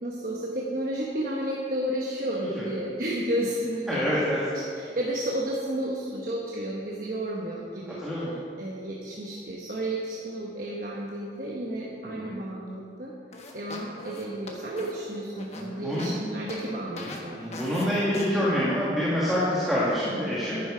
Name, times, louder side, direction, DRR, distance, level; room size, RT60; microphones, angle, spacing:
voice 1, 0.0-4.2 4.5-8.0 8.6-13.1 13.5-17.9, right 1 dB, 50° right, -3 dB, 1.1 m, -32 dB
voice 2, 3.9-4.4 8.0-8.3 12.0-12.3 15.5-16.1 17.0-20.6, equal, ahead, -9 dB, 1.9 m, -27 dB
sound 1, 13.3-16.2 16.5-16.6 17.0-17.2 17.5-17.9 18.1-18.3, left 2 dB, 35° left, 1.2 m, -40 dB
11.0 x 10.0 x 5.0 m, 2.4 s
head